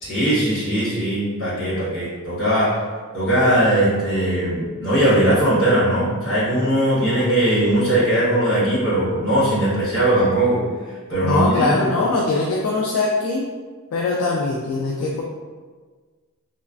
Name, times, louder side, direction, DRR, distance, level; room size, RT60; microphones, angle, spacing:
voice 1, 0.0-2.8 3.1-11.9, right 1 dB, 60° left, -9 dB, 1.2 m, -19 dB
voice 2, 11.2-13.4 13.9-15.2, left 3 dB, 75° left, -2 dB, 0.3 m, -21 dB
3.1 x 2.1 x 2.4 m, 1.5 s
head